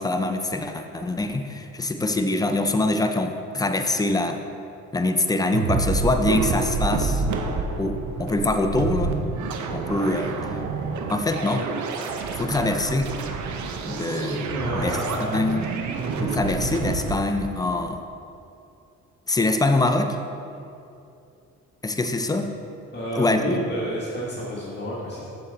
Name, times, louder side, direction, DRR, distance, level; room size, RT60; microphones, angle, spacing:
voice 1, 0.0-4.4 4.9-7.2 7.8-9.2 9.7-10.4 11.1-11.7 12.3-13.1 13.9-14.5 14.8-15.0 15.3-15.6 16.2-18.0 19.3-20.2 21.8-22.5 23.1-23.6, left 2 dB, 10° left, 6 dB, 0.5 m, -24 dB
sound 1, 5.5-17.1, right 4 dB, 75° right, 0.7 m, -28 dB
voice 2, 14.5-15.8 22.9-25.3, equal, 35° left, -8 dB, 1.7 m, -30 dB
7.0 x 6.7 x 4.0 m, 2.6 s
cardioid pair, 90°, 30 cm